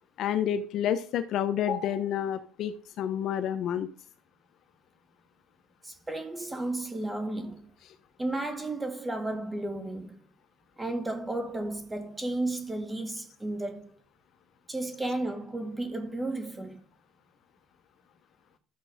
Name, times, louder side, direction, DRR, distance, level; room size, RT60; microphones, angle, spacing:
voice 1, 0.2-3.9, left 9 dB, 55° left, 1.0 m, -29 dB
voice 2, 5.8-7.6 8.2-10.2 10.8-13.9 14.7-16.8, right 2 dB, 10° right, 2.0 m, -33 dB
13.0 x 7.5 x 5.1 m
cardioid pair, 130°, 0 cm